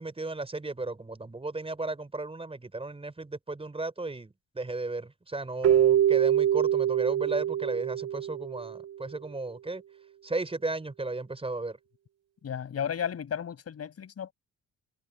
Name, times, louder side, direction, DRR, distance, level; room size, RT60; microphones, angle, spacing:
voice 1, 0.0-9.8 10.2-11.8, right 2 dB, 20° right, 5.2 m, -34 dB
Keyboard (musical), 5.6-8.9, right 10 dB, 55° right, 0.6 m, -25 dB
voice 2, 12.4-14.3, left 8 dB, 55° left, 5.9 m, -34 dB
cardioid pair, 90°, 30 cm